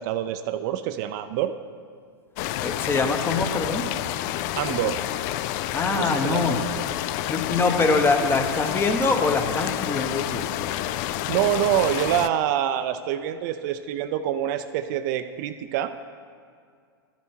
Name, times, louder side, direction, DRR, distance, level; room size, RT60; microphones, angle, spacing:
voice 1, 0.0-1.5 4.6-5.0 5.9-6.7 11.3-16.1, right 11 dB, 50° right, 9 dB, 0.5 m, -26 dB
sound 1, 2.4-12.3, left 13 dB, 45° left, 0.4 m, -29 dB
voice 2, 2.6-3.8 5.7-6.6 7.3-10.4, left 3 dB, 15° left, 5 dB, 1.0 m, -23 dB
11.5 x 7.1 x 4.5 m, 2.1 s
hypercardioid pair, 115°, 13 cm